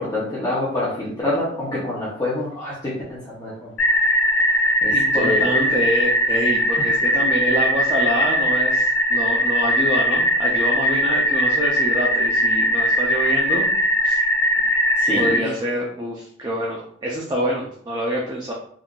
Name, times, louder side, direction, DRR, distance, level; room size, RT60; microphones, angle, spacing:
voice 1, 0.0-3.7 4.8-5.5 15.0-15.5, left 1 dB, 20° left, -8 dB, 0.7 m, -26 dB
sound 1, 3.8-15.4, equal, 75° left, 0.6 m, -20 dB
voice 2, 4.9-13.7 14.0-14.2 15.1-18.5, right 1 dB, 20° right, -4 dB, 0.5 m, -26 dB
3.6 x 2.5 x 2.3 m, 0.62 s
head